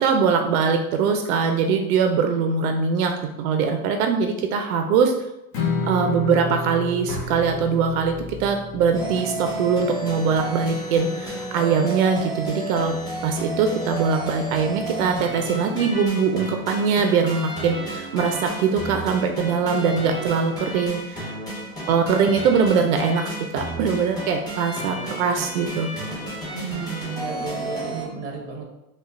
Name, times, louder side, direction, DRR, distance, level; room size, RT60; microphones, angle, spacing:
voice 1, 0.0-3.1 3.4-5.1 5.9-8.1 8.4-12.9 13.2-21.3 21.9-25.9, right 5 dB, 65° right, 5 dB, 0.5 m, -22 dB
Strum, 5.5-11.8, left 3 dB, 30° left, 0.6 m, -32 dB
sound 1, 7.1-11.0, left 2 dB, 80° left, 1.0 m, -41 dB
sound 2, 8.9-28.1, right 1 dB, 10° left, 1.1 m, -32 dB
voice 2, 26.5-28.6, right 4 dB, 20° right, 1 dB, 0.8 m, -32 dB
5.0 x 2.3 x 2.5 m, 0.89 s
supercardioid pair, 130°, 45 cm